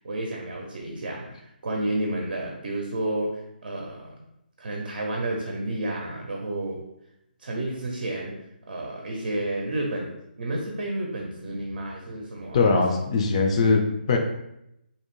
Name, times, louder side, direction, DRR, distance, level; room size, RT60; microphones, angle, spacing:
voice 1, 0.0-4.1 4.6-6.8 7.4-8.3 8.7-13.0, right 1 dB, 60° right, 0 dB, 0.5 m, -31 dB
voice 2, 12.5-14.2, left 4 dB, 35° left, 2 dB, 0.3 m, -21 dB
2.6 x 2.0 x 3.0 m, 0.83 s
figure-of-eight pair, 150°, 5 cm